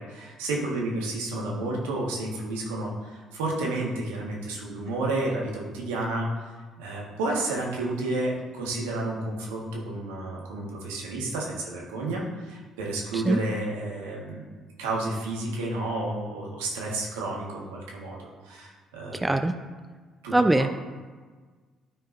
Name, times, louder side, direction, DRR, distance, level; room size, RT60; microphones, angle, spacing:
voice 1, 0.0-6.5 6.8-14.5 14.8-19.2 20.2-20.6, right 2 dB, 85° right, -2 dB, 1.5 m, -31 dB
voice 2, 19.1-19.5 20.3-20.7, right 2 dB, 15° right, 7 dB, 0.6 m, -22 dB
12.5 x 4.8 x 2.6 m, 1.4 s
hypercardioid pair, 60°, 0 cm